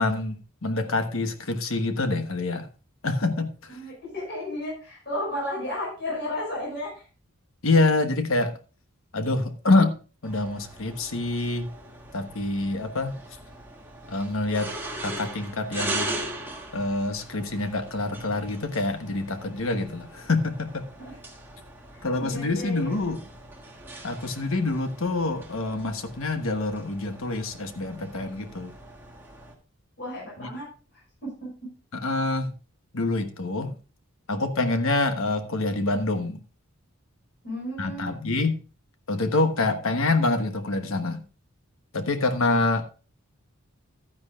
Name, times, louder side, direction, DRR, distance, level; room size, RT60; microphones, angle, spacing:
voice 1, 0.0-2.7 3.0-3.8 7.6-8.5 9.1-9.9 10.2-11.7 12.1-13.2 14.1-14.7 15.0-16.1 16.7-20.9 22.0-23.2 24.0-28.7 30.4-30.5 31.9-32.5 32.9-33.7 34.3-36.4 37.8-38.6 39.1-41.2 41.9-42.8, left 2 dB, 70° left, 7 dB, 1.2 m, -26 dB
voice 2, 3.7-7.0 22.2-22.9 30.0-30.7 31.2-31.5 37.4-38.2, left 1 dB, 50° left, -4 dB, 6.1 m, -33 dB
sound 1, 10.2-29.5, right 1 dB, 10° right, 1.4 m, -40 dB
12.5 x 9.9 x 2.4 m, 0.34 s
head